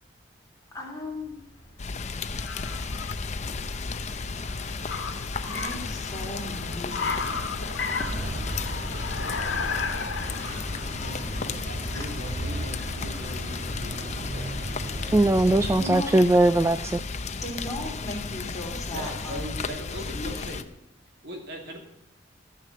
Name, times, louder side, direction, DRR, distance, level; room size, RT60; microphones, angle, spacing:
voice 1, 0.7-1.4 3.8-4.1 5.4-7.3 15.3-15.5 15.8-16.2 17.3-19.5 20.1-20.5, left 1 dB, 20° left, -1 dB, 3.2 m, -39 dB
Car, 1.2-14.2, left 4 dB, 80° left, 1.7 m, -36 dB
Rain, 1.8-20.6, left 4 dB, 40° left, 0.6 m, -34 dB
sound 1, 8.0-16.0, right 1 dB, 45° right, 2.9 m, -36 dB
voice 2, 11.0-14.5 18.9-20.6 21.2-21.8, equal, 65° right, 2 dB, 2.7 m, -40 dB
voice 3, 15.1-17.0, right 2 dB, 15° right, 12 dB, 0.3 m, -20 dB
13.0 x 6.7 x 7.4 m, 0.83 s
head